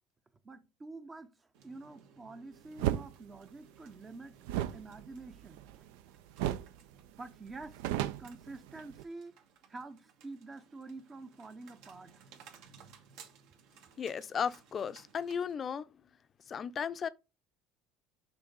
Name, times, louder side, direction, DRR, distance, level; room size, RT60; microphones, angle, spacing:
voice 1, 0.4-4.4 4.7-5.6 7.2-7.8 8.2-9.4 9.7-12.5, right 3 dB, 20° right, 0.5 m, -48 dB
sound 1, 1.5-15.5, right 7 dB, 75° right, 1.4 m, -60 dB
sound 2, 2.8-3.1 4.4-6.0 6.4-6.8 7.1-7.2 7.5-9.0, right 12 dB, 90° right, 0.4 m, -34 dB
voice 2, 14.0-15.9 16.5-17.1, left 7 dB, 30° left, 0.5 m, -35 dB
6.0 x 3.4 x 5.3 m
cardioid pair, 130°, 0 cm